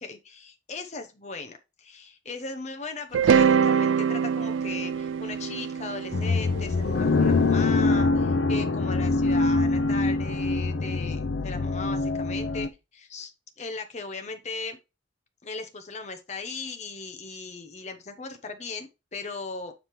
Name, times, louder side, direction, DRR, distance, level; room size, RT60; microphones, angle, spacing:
voice 1, 0.0-13.3 13.6-14.8 15.4-19.7, left 3 dB, 35° left, 6 dB, 0.8 m, -38 dB
sound 1, 3.1-7.3, right 7 dB, 85° right, 0.3 m, -24 dB
sound 2, 6.1-12.7, left 3 dB, 85° left, 0.6 m, -24 dB
7.5 x 5.0 x 3.1 m, 0.26 s
head